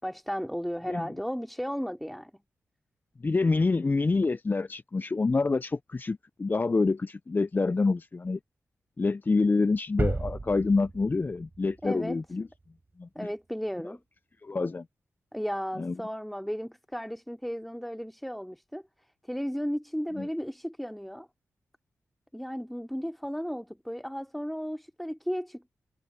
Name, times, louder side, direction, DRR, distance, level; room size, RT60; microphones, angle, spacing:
voice 1, 0.0-2.4 11.8-12.2 13.1-14.0 15.3-18.8 19.2-21.3 22.3-25.7, equal, ahead, 3.2 m, -34 dB
voice 2, 3.2-8.4 9.0-12.5 13.0-13.3 14.4-14.9 15.8-16.0 20.2-20.3, left 3 dB, 35° left, 0.5 m, -27 dB
sound 1, 10.0-12.7, right 3 dB, 35° right, 5.0 m, -34 dB
cardioid pair, 50°, 6 cm